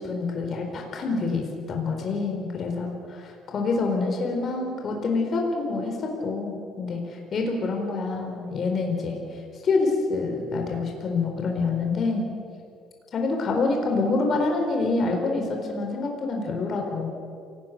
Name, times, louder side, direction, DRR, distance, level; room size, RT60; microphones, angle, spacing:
voice 1, 0.0-12.3 13.1-17.1, left 3 dB, 50° left, 2 dB, 4.4 m, -27 dB
28.0 x 19.0 x 6.8 m, 2.5 s
hypercardioid pair, 65°, 0 cm